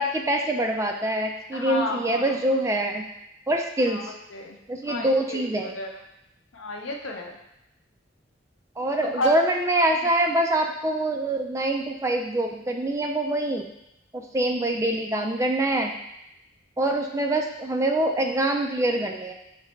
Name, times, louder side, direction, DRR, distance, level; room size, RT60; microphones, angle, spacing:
voice 1, 0.0-3.0 3.5-4.1 4.7-5.7 8.8-13.6 14.1-15.9 16.8-19.3, right 1 dB, 15° right, 3 dB, 0.3 m, -25 dB
voice 2, 1.5-2.4 3.9-4.6 4.9-6.0 6.5-7.4 9.1-9.4, left 1 dB, 85° left, 2 dB, 0.7 m, -32 dB
5.1 x 3.2 x 3.1 m, 0.83 s
head